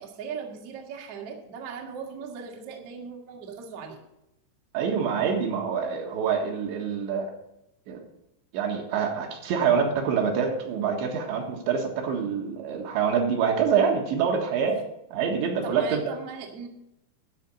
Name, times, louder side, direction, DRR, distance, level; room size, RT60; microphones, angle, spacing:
voice 1, 0.0-4.0 15.6-16.7, right 6 dB, 55° right, 0 dB, 1.7 m, -38 dB
voice 2, 4.7-7.3 7.9-8.0 8.5-14.8 15.1-16.1, right 6 dB, 75° right, 2 dB, 3.7 m, -26 dB
12.5 x 5.2 x 8.6 m, 0.84 s
omnidirectional pair, 5.4 m